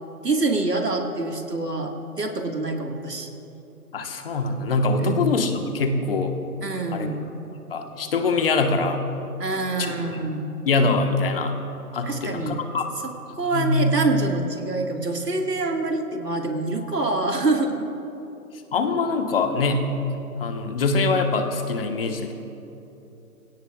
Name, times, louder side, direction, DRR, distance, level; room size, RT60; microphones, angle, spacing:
voice 1, 0.2-3.3 5.0-5.3 6.6-7.3 9.4-10.6 12.0-12.6 13.0-17.9, right 2 dB, 90° right, 3 dB, 1.9 m, -26 dB
voice 2, 3.9-6.4 6.9-7.1 7.7-9.0 9.8-10.3 10.7-11.5 11.9-12.9 13.5-14.0 18.7-19.8 20.4-22.3, left 3 dB, 40° left, 5 dB, 1.3 m, -23 dB
24.5 x 17.0 x 2.3 m, 2.9 s
figure-of-eight pair, 145°, 46 cm